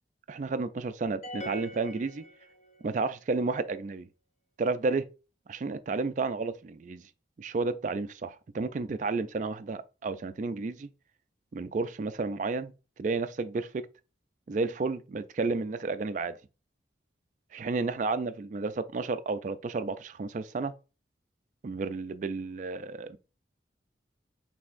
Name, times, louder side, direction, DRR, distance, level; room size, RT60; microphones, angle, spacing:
voice 1, 0.3-2.2 2.8-4.1 4.6-5.1 5.5-7.0 7.4-10.9 11.5-12.7 13.0-13.8 14.5-16.3 17.5-20.7 21.6-23.2, right 3 dB, 40° right, 0.3 m, -31 dB
sound 1, 1.2-2.9, equal, 40° left, 0.9 m, -42 dB
6.2 x 3.4 x 2.5 m
head